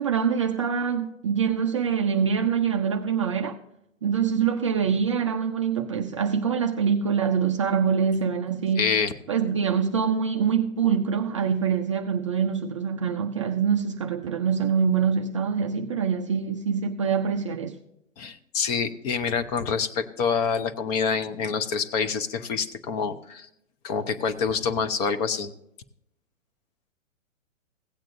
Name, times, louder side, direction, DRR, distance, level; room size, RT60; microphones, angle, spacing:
voice 1, 0.0-3.6 4.0-8.8 9.3-17.8, right 7 dB, 25° right, 0.4 m, -24 dB
voice 2, 8.8-9.1 18.2-23.5 23.8-25.5, left 6 dB, 30° left, 0.7 m, -26 dB
16.0 x 8.8 x 2.6 m
figure-of-eight pair, 120°, 39 cm